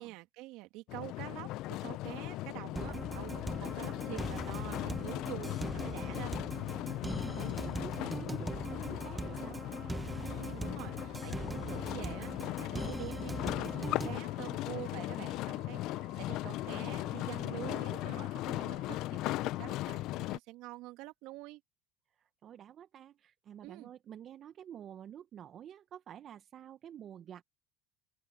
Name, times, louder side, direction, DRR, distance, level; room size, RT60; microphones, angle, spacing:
voice 1, 0.0-6.3 10.2-21.6 23.6-23.9, right 20 dB, 70° right, 2.3 m, -47 dB
sound 1, 0.9-20.4, left 17 dB, 65° left, 0.8 m, -38 dB
sound 2, 2.8-14.2, right 2 dB, 10° right, 1.4 m, -41 dB
voice 2, 6.9-9.6 17.6-18.0 22.1-27.4, right 10 dB, 50° right, 1.3 m, -50 dB
sound 3, 8.5-19.1, right 12 dB, 90° right, 4.3 m, -59 dB
open air
hypercardioid pair, 80°, 0 cm